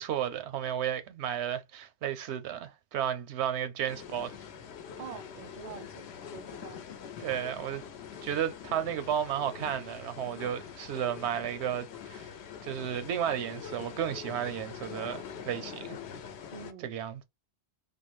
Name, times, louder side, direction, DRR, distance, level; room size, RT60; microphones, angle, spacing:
voice 1, 0.0-4.3 7.2-7.8 8.2-12.3 12.6-16.0 16.8-17.2, right 9 dB, 85° right, 0.9 m, -33 dB
sound 1, 3.9-16.7, left 7 dB, 80° left, 0.8 m, -44 dB
voice 2, 5.0-6.8 16.5-16.9, right 8 dB, 55° right, 0.5 m, -46 dB
3.5 x 2.0 x 3.0 m
omnidirectional pair, 1.1 m